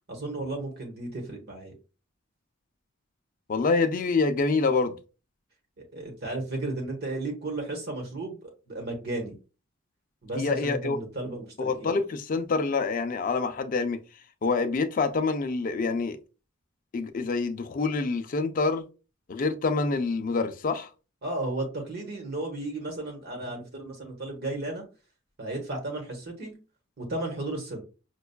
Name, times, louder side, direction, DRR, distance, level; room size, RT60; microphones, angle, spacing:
voice 1, 0.1-1.7 5.8-9.4 10.2-11.9 21.2-24.9 25.4-26.6 27.0-27.8, right 2 dB, 55° right, 1.1 m, -34 dB
voice 2, 3.5-5.0 10.3-11.0 11.6-14.0 14.4-16.2 16.9-18.9 19.3-20.9, left 4 dB, 45° left, 0.4 m, -26 dB
5.3 x 2.3 x 2.2 m
head